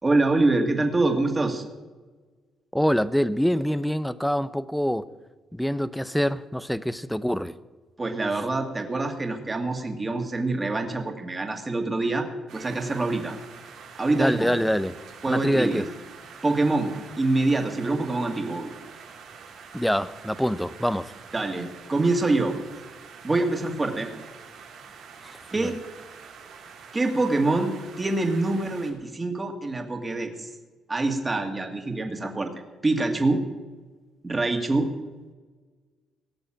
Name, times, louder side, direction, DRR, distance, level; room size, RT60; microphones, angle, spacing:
voice 1, 0.0-1.6 8.0-12.3 12.5-13.3 14.0-14.5 15.2-15.8 16.4-18.8 21.3-22.5 23.2-24.1 25.5-25.8 26.9-30.5 30.9-32.5 32.8-33.4 34.2-34.9, right 2 dB, 25° right, 3 dB, 2.3 m, -25 dB
voice 2, 2.7-5.1 5.5-7.5 14.1-14.9 15.3-15.9 19.7-21.1 25.6-25.7, equal, ahead, 14 dB, 0.7 m, -25 dB
sound 1, 12.5-28.9, right 6 dB, 80° right, 3.1 m, -46 dB
18.0 x 7.0 x 8.9 m, 1.3 s
cardioid pair, 90°, 0 cm